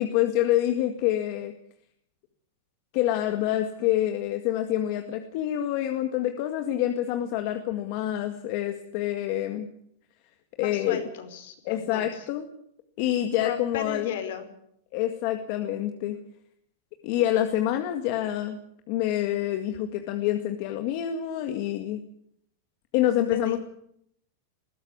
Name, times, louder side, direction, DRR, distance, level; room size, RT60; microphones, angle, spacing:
voice 1, 0.0-1.5 2.9-9.7 10.6-11.0 11.7-12.5 13.0-14.1 14.9-16.2 17.0-18.6 18.9-22.0 22.9-23.6, left 12 dB, 45° left, 6 dB, 1.9 m, -27 dB
voice 2, 10.6-12.2 13.3-14.4 23.3-23.6, left 8 dB, 65° left, 8 dB, 4.9 m, -35 dB
20.5 x 16.0 x 9.6 m, 0.70 s
supercardioid pair, 155°, 0 cm